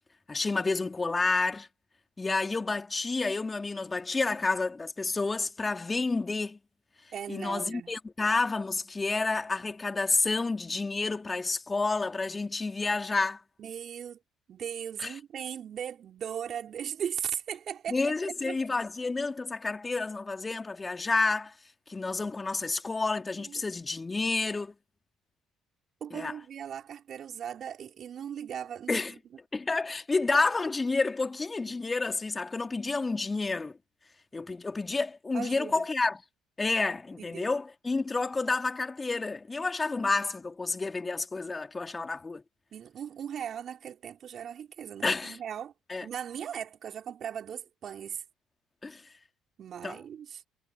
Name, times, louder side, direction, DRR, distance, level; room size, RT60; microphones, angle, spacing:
voice 1, 0.3-1.7 2.2-6.6 7.3-13.4 15.0-15.1 17.9-21.5 21.9-24.7 26.1-26.3 28.9-29.1 29.5-33.8 34.3-36.2 36.6-42.4 45.0-45.4 45.9-46.1 48.8-49.0 49.8-50.0, left 3 dB, 25° left, 3.4 m, -30 dB
voice 2, 7.1-7.9 13.6-14.2 14.5-18.0 18.3-18.6 23.5-23.6 26.0-29.0 35.3-35.9 37.2-37.5 42.7-45.7 46.0-48.2 49.6-50.4, right 9 dB, 50° right, 4.1 m, -38 dB
hypercardioid pair, 60°, 0 cm